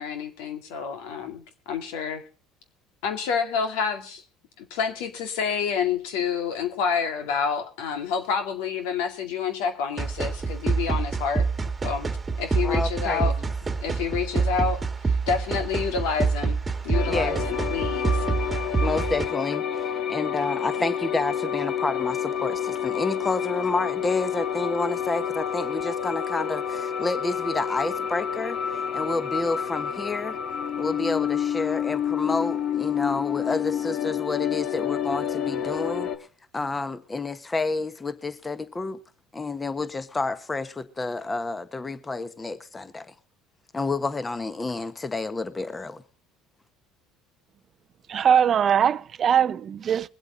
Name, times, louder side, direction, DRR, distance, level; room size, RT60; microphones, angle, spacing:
voice 1, 0.0-2.2 3.0-4.2 4.6-11.5 11.8-12.1 12.4-13.3 13.8-18.2, left 6 dB, 80° left, 2.2 m, -28 dB
sound 1, 10.0-19.3, right 4 dB, 20° right, 1.5 m, -26 dB
voice 2, 12.6-13.3 17.1-17.4 18.8-30.4 30.8-36.1 36.5-39.0 39.3-43.1 43.7-46.0, left 3 dB, 20° left, 1.3 m, -29 dB
sound 2, 16.9-36.2, left 8 dB, 55° left, 1.5 m, -29 dB
voice 3, 48.1-50.1, right 8 dB, 45° right, 0.5 m, -21 dB
22.5 x 8.1 x 3.9 m
supercardioid pair, 90°, 0 cm